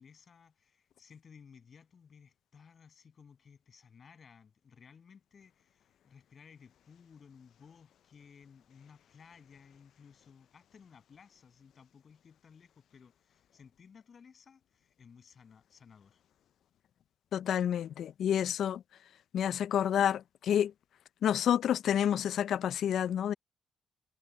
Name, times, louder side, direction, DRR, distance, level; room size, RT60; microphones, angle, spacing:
voice 1, 0.0-16.2, left 6 dB, 45° left, 7.5 m, -58 dB
voice 2, 17.3-18.8 19.3-20.7 21.2-23.3, left 9 dB, 70° left, 0.4 m, -29 dB
cardioid pair, 90°, 0 cm